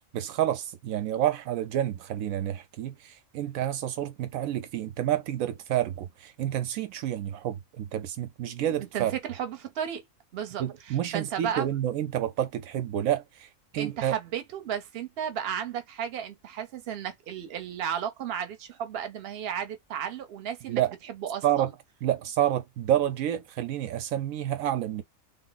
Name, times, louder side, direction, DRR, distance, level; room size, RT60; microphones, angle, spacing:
voice 1, 0.1-9.1 10.6-14.1 20.7-20.9 21.4-21.7 22.0-25.0, right 11 dB, 85° right, 1.0 m, -29 dB
voice 2, 8.6-10.0 10.3-11.7 13.8-20.8 21.1-21.7, right 9 dB, 55° right, 0.9 m, -34 dB
3.5 x 2.0 x 3.8 m
omnidirectional pair, 1.4 m